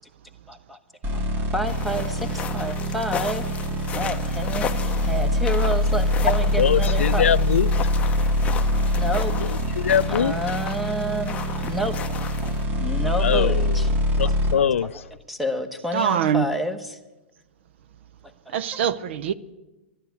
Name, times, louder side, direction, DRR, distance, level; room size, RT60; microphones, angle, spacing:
voice 1, 0.5-0.8 1.1-3.4 3.9-7.4 8.9-9.5 10.1-12.5 12.8-13.9 15.3-17.0 18.5-18.8, equal, ahead, 1.1 m, -29 dB
sound 1, 1.0-14.5, left 1 dB, 30° right, 2.0 m, -24 dB
sound 2, 1.7-12.7, left 8 dB, 20° left, 0.7 m, -35 dB
voice 2, 6.6-7.7 9.4-10.3 13.2-13.8 14.2-15.0, left 8 dB, 90° left, 0.4 m, -23 dB
voice 3, 15.9-16.5 18.5-19.3, right 8 dB, 65° right, 0.7 m, -23 dB
12.0 x 12.0 x 8.2 m
hypercardioid pair, 140°, 7 cm